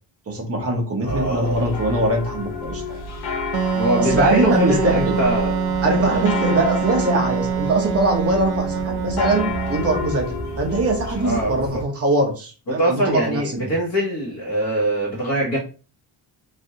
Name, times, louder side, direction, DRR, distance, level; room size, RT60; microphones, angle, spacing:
voice 1, 0.3-3.0 4.0-5.2 5.8-10.3 10.6-13.6, right 2 dB, 30° right, 1 dB, 0.9 m, -22 dB
sound 1, 1.0-11.8, left 2 dB, 60° left, 0.8 m, -30 dB
voice 2, 1.0-1.6 3.7-5.5 5.9-6.3 8.9-9.0 11.2-11.8 12.7-15.6, right 1 dB, 35° left, -5 dB, 1.1 m, -23 dB
Wind instrument woodwind instrument, 3.5-10.0, right 7 dB, 60° right, 0.5 m, -24 dB
3.2 x 2.6 x 2.7 m, 0.35 s
cardioid pair, 155°, 45 cm